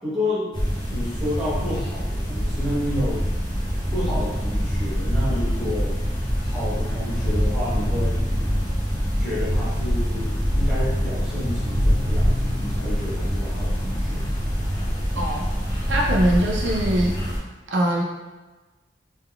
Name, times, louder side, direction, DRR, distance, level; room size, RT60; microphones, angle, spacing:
voice 1, 0.0-0.6 0.9-3.2 3.9-5.9 6.4-8.2 9.2-14.2, left 1 dB, 5° right, -11 dB, 1.1 m, -30 dB
sound 1, 0.5-17.4, equal, 25° left, 0.8 m, -24 dB
voice 2, 15.2-15.5 15.9-17.2 17.7-18.0, right 1 dB, 80° right, -1 dB, 0.5 m, -22 dB
3.6 x 2.2 x 2.2 m, 1.2 s
head